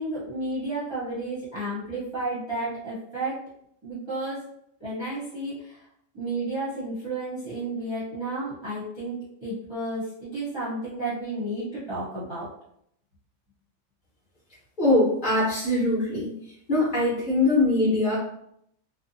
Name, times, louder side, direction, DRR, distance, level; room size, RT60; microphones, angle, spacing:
voice 1, 0.0-3.4 3.8-4.4 4.8-5.8 6.1-9.1 9.4-12.5, right 2 dB, 25° right, -9 dB, 0.7 m, -32 dB
voice 2, 14.8-16.3 16.7-18.2, left 2 dB, 40° left, -7 dB, 1.1 m, -22 dB
2.7 x 2.0 x 2.6 m, 0.72 s
omnidirectional pair, 1.4 m